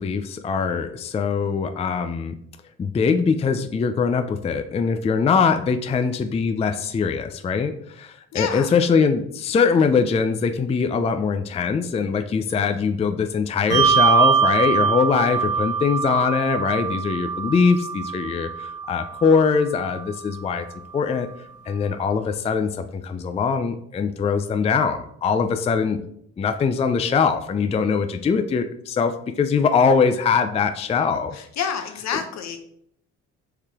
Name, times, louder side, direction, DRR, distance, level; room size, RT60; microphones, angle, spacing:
voice 1, 0.0-2.4 2.8-18.5 18.9-20.6 20.9-21.3 21.7-22.7 23.0-26.0 26.4-29.1 29.4-31.3 32.1-32.2, left 5 dB, 20° left, 8 dB, 0.3 m, -22 dB
voice 2, 8.3-8.7 31.3-32.6, left 7 dB, 65° left, 7 dB, 0.8 m, -28 dB
Bell, 13.7-20.6, right 6 dB, 80° right, 1.3 m, -23 dB
4.7 x 3.2 x 3.5 m, 0.69 s
supercardioid pair, 75°, 30 cm